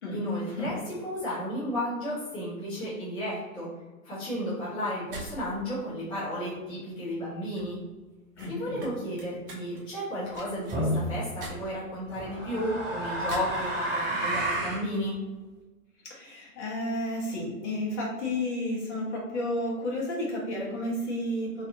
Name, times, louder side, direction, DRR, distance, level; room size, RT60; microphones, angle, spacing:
voice 1, 0.1-3.7 4.0-7.8 8.5-15.2, equal, 10° left, -10 dB, 0.8 m, -33 dB
sound 1, 4.9-13.6, right 2 dB, 40° right, 0.9 m, -46 dB
voice 2, 8.4-8.9 16.0-21.7, left 1 dB, 50° left, -3 dB, 1.1 m, -32 dB
sound 2, 10.7-11.1 12.1-14.8, right 1 dB, 15° right, 1.3 m, -30 dB
3.3 x 2.4 x 2.7 m, 1.2 s
figure-of-eight pair, 125°, 44 cm